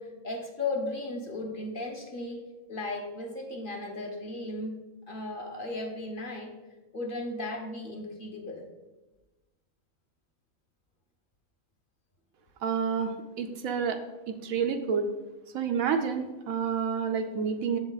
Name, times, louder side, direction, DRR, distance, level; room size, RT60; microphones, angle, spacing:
voice 1, 0.0-2.4 2.7-4.8 5.1-6.5 6.9-8.6, left 2 dB, 40° left, 1 dB, 1.2 m, -35 dB
voice 2, 12.6-13.1 13.4-14.0 14.3-15.1 15.5-17.8, right 6 dB, 75° right, 6 dB, 1.1 m, -29 dB
7.3 x 7.1 x 3.9 m, 1.1 s
omnidirectional pair, 1.5 m